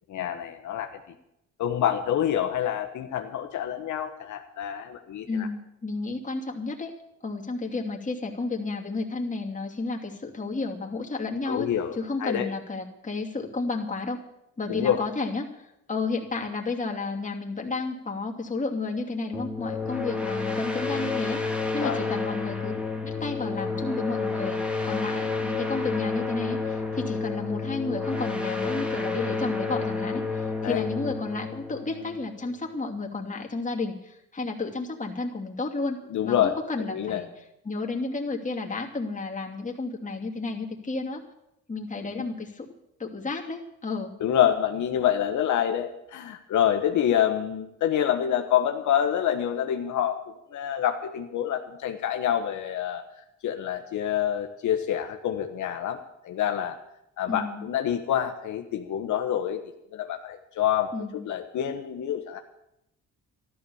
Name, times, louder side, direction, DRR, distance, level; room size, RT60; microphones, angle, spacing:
voice 1, 0.1-0.9 1.6-5.5 11.5-12.5 14.7-15.0 21.8-22.1 30.6-30.9 36.1-36.5 36.9-37.2 44.2-50.2 50.5-53.0 53.4-56.8 57.2-59.6 59.9-60.9 61.2-62.4, left 10 dB, 75° left, 5 dB, 1.2 m, -27 dB
voice 2, 5.3-6.9 7.2-14.2 14.6-21.4 21.7-22.7 23.0-36.0 36.2-37.3 37.6-41.2 41.7-42.7 43.0-44.1 57.3-57.7 60.9-61.2, left 3 dB, 25° left, 0 dB, 2.7 m, -32 dB
sound 1, 19.3-32.7, left 4 dB, 5° right, 1.9 m, -30 dB
13.0 x 12.5 x 7.1 m, 0.84 s
cardioid pair, 90°, 30 cm